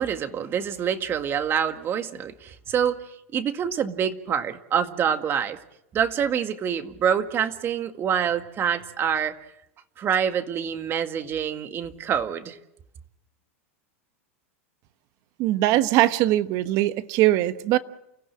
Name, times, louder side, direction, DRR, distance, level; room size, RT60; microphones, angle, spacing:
voice 1, 0.0-5.6 5.9-9.4 10.0-12.6, right 8 dB, 30° right, 1.9 m, -26 dB
voice 2, 15.4-17.8, right 15 dB, 50° right, 1.2 m, -21 dB
29.5 x 15.5 x 7.6 m
hypercardioid pair, 115°, 7 cm